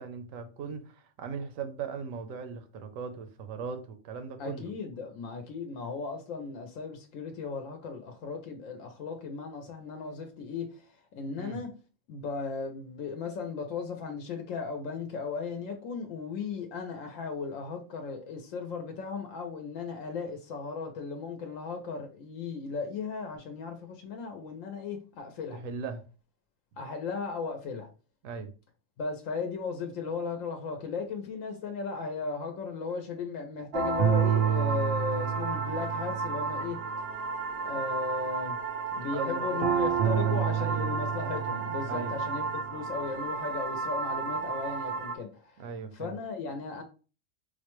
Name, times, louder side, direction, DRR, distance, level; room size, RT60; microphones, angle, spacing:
voice 1, 0.0-4.7 11.3-11.6 25.6-26.0 28.2-28.5 39.1-40.9 41.9-42.1 45.6-46.1, right 5 dB, 80° right, 1.0 m, -39 dB
voice 2, 4.4-11.7 12.1-25.6 26.8-27.9 29.0-37.1 37.6-38.6 39.0-45.7 45.9-46.8, left 5 dB, 80° left, 1.0 m, -36 dB
sound 1, 33.7-45.1, right 6 dB, 65° right, 0.6 m, -30 dB
4.3 x 2.1 x 3.0 m
omnidirectional pair, 1.3 m